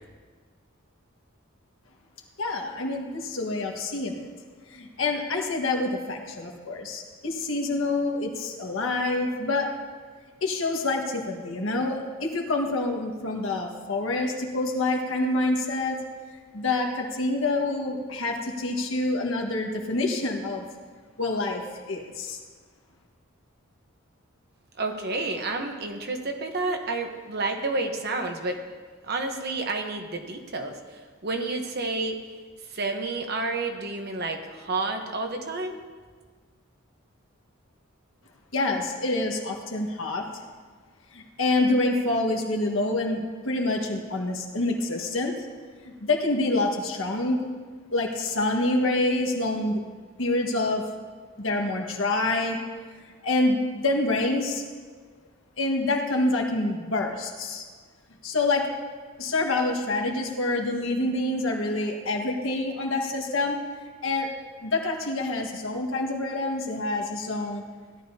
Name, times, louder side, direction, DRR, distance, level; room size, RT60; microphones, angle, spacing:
voice 1, 2.4-4.3 4.7-9.7 10.4-16.0 16.5-20.6 21.2-21.6 21.9-22.4 38.5-40.2 41.1-45.3 45.8-47.5 47.9-49.8 50.2-50.8 51.4-52.6 53.2-54.6 55.6-57.7 58.2-58.6 59.2-63.6 64.0-64.3 64.6-67.6, left 2 dB, 75° left, 1 dB, 1.7 m, -27 dB
voice 2, 24.8-28.6 29.0-30.8 31.2-32.2 32.7-35.8, right 3 dB, 50° right, 4 dB, 1.1 m, -30 dB
17.0 x 12.0 x 2.8 m, 1.6 s
head